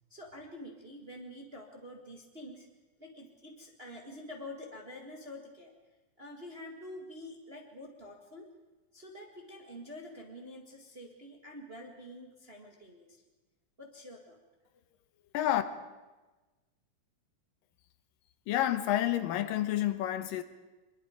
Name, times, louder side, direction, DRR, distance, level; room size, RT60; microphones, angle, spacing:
voice 1, 0.1-2.7 3.0-5.7 6.2-8.5 8.9-13.2 13.8-14.4, left 1 dB, 25° right, 1.3 m, -47 dB
voice 2, 18.5-20.4, left 13 dB, 85° left, 2.7 m, -29 dB
24.5 x 21.5 x 5.0 m
omnidirectional pair, 3.9 m